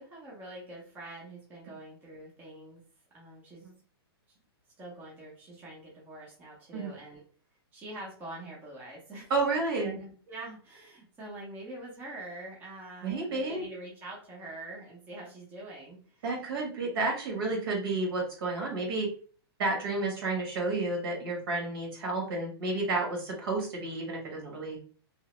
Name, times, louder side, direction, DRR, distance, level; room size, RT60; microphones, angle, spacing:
voice 1, 0.0-2.8 3.1-3.7 4.8-7.2 7.7-9.3 9.8-16.2, right 2 dB, 15° right, -4 dB, 0.6 m, -45 dB
voice 2, 9.3-9.9 13.0-13.6 16.2-19.1 19.6-24.8, right 3 dB, 60° right, 0 dB, 1.4 m, -31 dB
2.9 x 2.1 x 3.0 m, 0.43 s
hypercardioid pair, 160°, 14 cm